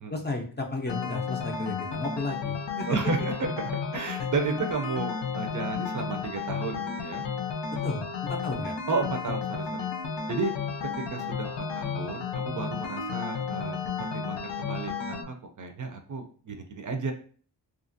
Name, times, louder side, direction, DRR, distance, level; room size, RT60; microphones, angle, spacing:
voice 1, 0.1-3.3 7.8-8.7, left 2 dB, 25° left, 2 dB, 0.4 m, -34 dB
sound 1, 0.9-15.2, left 6 dB, 75° left, 0.6 m, -33 dB
voice 2, 2.9-7.2 8.9-9.9 10.3-10.5 11.1-17.1, right 4 dB, 50° right, 5 dB, 0.4 m, -32 dB
2.8 x 2.4 x 2.5 m, 0.43 s
wide cardioid pair, 120°, 42 cm